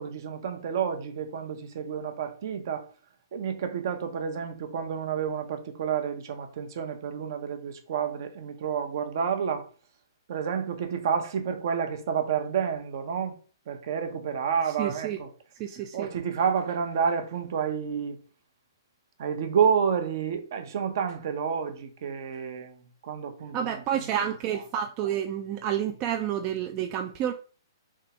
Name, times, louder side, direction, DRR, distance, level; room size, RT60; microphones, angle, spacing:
voice 1, 0.0-2.9 3.3-9.7 10.3-13.3 13.7-15.3 15.9-18.2 19.2-24.6, right 7 dB, 55° right, 0.7 m, -30 dB
voice 2, 14.8-15.2 15.6-16.1 23.5-27.3, right 10 dB, 30° right, 0.3 m, -29 dB
3.5 x 3.3 x 2.9 m
hypercardioid pair, 150°, 2 cm